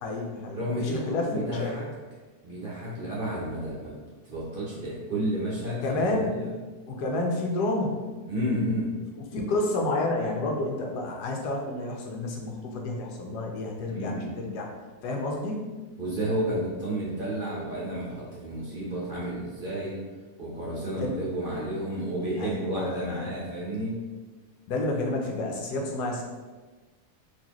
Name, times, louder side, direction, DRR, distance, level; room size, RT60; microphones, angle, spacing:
voice 1, 0.0-1.8 5.8-6.3 6.9-8.0 9.3-14.7 15.0-15.7 20.9-21.2 22.4-23.3 24.7-26.2, left 2 dB, 90° left, 0 dB, 1.3 m, -30 dB
voice 2, 0.5-1.9 2.4-4.0 4.2-6.5 8.3-8.9 13.9-14.4 16.0-20.0 20.4-24.0, right 1 dB, 45° right, -6 dB, 0.7 m, -31 dB
4.2 x 2.9 x 2.9 m, 1.3 s
omnidirectional pair, 1.7 m